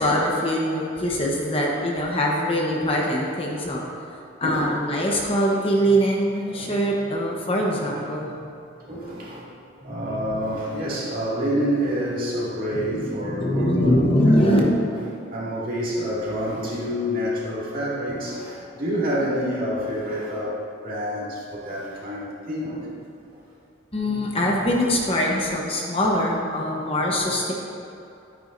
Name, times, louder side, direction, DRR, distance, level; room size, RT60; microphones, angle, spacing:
voice 1, 0.0-3.8 4.4-8.3 9.9-10.1 12.7-14.6 23.9-27.5, equal, 30° left, -2 dB, 1.0 m, -23 dB
voice 2, 4.4-4.7 6.5-6.8 7.7-8.1 8.9-9.5 9.8-14.0 14.3-14.6 15.1-22.9 23.3-23.4, equal, 45° right, -7 dB, 2.3 m, -28 dB
12.0 x 9.5 x 2.7 m, 2.7 s
head